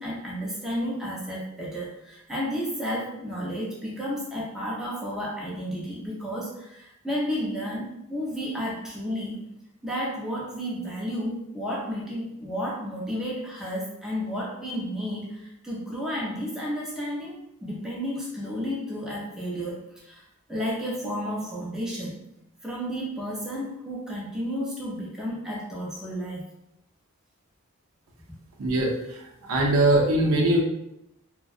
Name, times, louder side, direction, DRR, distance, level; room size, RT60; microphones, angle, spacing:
voice 1, 0.0-9.4 9.8-20.2 20.5-22.2 22.6-26.5, equal, ahead, -6 dB, 0.4 m, -32 dB
voice 2, 28.6-30.6, right 1 dB, 75° right, 0 dB, 0.5 m, -22 dB
2.6 x 2.1 x 2.3 m, 0.81 s
head